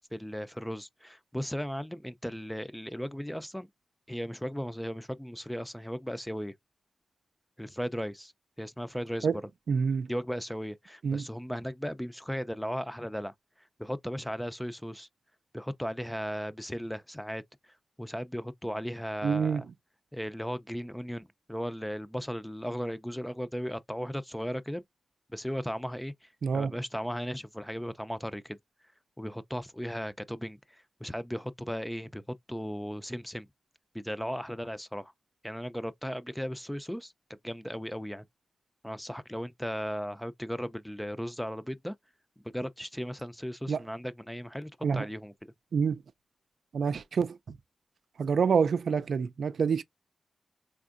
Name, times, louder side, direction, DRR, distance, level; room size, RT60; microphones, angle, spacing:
voice 1, 0.1-3.7 4.1-6.5 7.6-8.3 8.6-9.3 10.1-15.1 15.5-19.7 20.1-24.8 25.3-28.6 29.2-32.2 32.5-33.5 33.9-35.1 35.4-37.1 37.4-38.2 38.8-42.0 42.5-45.3, equal, 5° left, 0.4 m, -36 dB
voice 2, 9.7-10.1 11.0-11.2 19.2-19.6 26.4-26.7 43.7-43.8 44.8-45.0 45.7-46.0 46.7-47.6 48.2-49.8, right 6 dB, 80° right, 0.4 m, -27 dB
4.3 x 3.5 x 2.5 m
cardioid pair, 65°, 0 cm